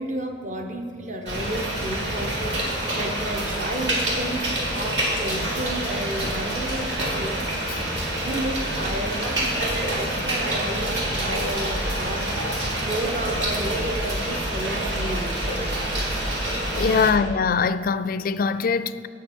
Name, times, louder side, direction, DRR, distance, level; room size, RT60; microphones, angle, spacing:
voice 1, 0.0-2.6 2.9-7.4 8.2-12.3 12.8-15.3 17.0-17.1, right 1 dB, 40° right, 1.1 m, -32 dB
sound 1, 1.3-17.1, right 1 dB, 70° right, 2.5 m, -27 dB
voice 2, 16.8-19.1, left 5 dB, 50° left, 0.4 m, -22 dB
17.5 x 6.4 x 4.4 m
head